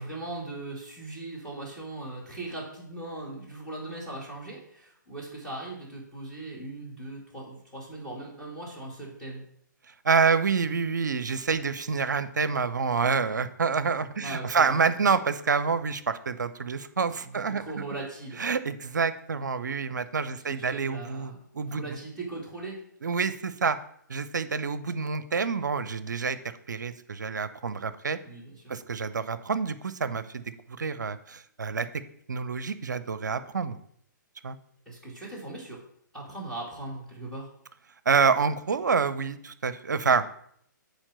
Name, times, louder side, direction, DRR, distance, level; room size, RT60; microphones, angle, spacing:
voice 1, 0.0-9.4 14.2-14.8 17.2-18.4 20.3-22.8 28.2-28.8 34.9-35.8 36.1-37.5, right 2 dB, 5° left, -5 dB, 2.5 m, -39 dB
voice 2, 10.0-17.8 18.4-22.0 23.0-23.8 24.1-26.4 26.7-28.2 28.7-30.4 30.8-31.9 32.3-33.8 34.4-34.6 38.1-40.3, right 5 dB, 60° right, 14 dB, 0.6 m, -27 dB
7.2 x 4.5 x 6.5 m, 0.67 s
figure-of-eight pair, 125°, 11 cm